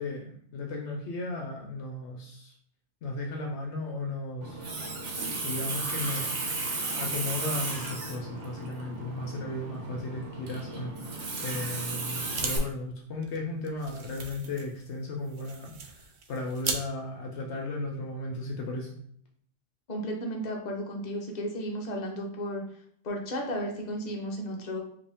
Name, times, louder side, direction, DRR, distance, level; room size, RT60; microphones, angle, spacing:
voice 1, 0.0-2.5 3.0-4.8 5.4-6.3 6.9-18.9, left 2 dB, 70° left, 1 dB, 0.9 m, -35 dB
Water tap faucet, 4.4-12.6, right 3 dB, 75° right, 1.3 m, -34 dB
sound 1, 12.1-12.5 12.8-12.9 13.2-16.8, right 4 dB, 55° right, 0.6 m, -38 dB
voice 2, 19.9-22.6 23.0-24.8, equal, 40° left, 1 dB, 0.9 m, -34 dB
4.7 x 2.8 x 3.5 m, 0.64 s
omnidirectional pair, 1.2 m